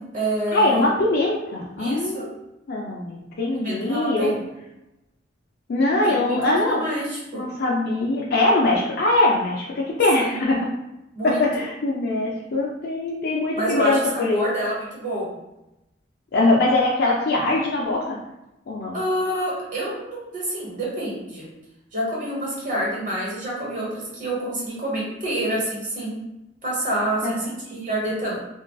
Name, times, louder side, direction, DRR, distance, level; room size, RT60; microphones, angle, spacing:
voice 1, 0.0-0.9 1.8-2.3 3.5-4.4 6.0-7.4 10.2-10.4 11.1-11.4 13.5-15.3 18.9-21.5 21.9-26.3 26.6-28.4, right 1 dB, 45° right, -5 dB, 1.1 m, -27 dB
voice 2, 0.5-2.3 2.7-4.4 5.7-6.8 7.3-10.7 11.2-14.4 16.3-18.2 18.7-19.0 27.2-27.4, left 2 dB, 60° left, -3 dB, 0.4 m, -22 dB
3.7 x 2.3 x 2.3 m, 0.92 s
head